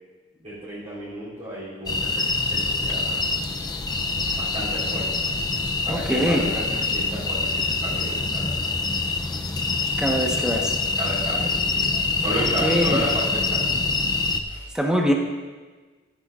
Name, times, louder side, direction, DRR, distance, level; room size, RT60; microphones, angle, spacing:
voice 1, 0.4-3.2 4.4-5.3 5.8-8.5 10.0-10.2 11.0-13.6 14.4-14.7, right 1 dB, 30° right, -10 dB, 4.1 m, -32 dB
sound 1, 1.9-14.4, left 3 dB, 20° left, 0.5 m, -25 dB
voice 2, 5.9-6.4 10.0-10.7 12.4-13.0 14.7-15.1, equal, 5° right, 0 dB, 1.2 m, -23 dB
14.5 x 12.5 x 2.5 m, 1.3 s
head